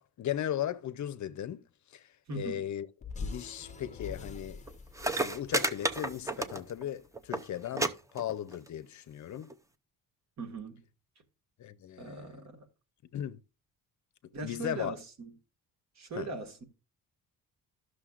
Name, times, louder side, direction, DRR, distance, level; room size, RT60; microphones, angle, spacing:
voice 1, 0.0-1.6 1.9-2.9 3.2-4.6 5.2-9.5 11.6-12.4 13.1-13.4 14.4-14.9 16.1-16.3, left 11 dB, 55° left, 0.6 m, -37 dB
voice 2, 2.3-2.6 10.4-10.8 12.0-12.7 14.3-15.3 16.0-16.6, right 3 dB, 50° right, 1.8 m, -40 dB
sound 1, 3.0-7.4, left 4 dB, 20° left, 0.8 m, -44 dB
sound 2, 4.7-4.8 5.0-6.9 7.2-7.4 7.8-7.9 8.2-8.7 9.5-9.6, right 2 dB, 10° right, 0.6 m, -31 dB
12.5 x 6.4 x 2.4 m
cardioid pair, 145°, 35 cm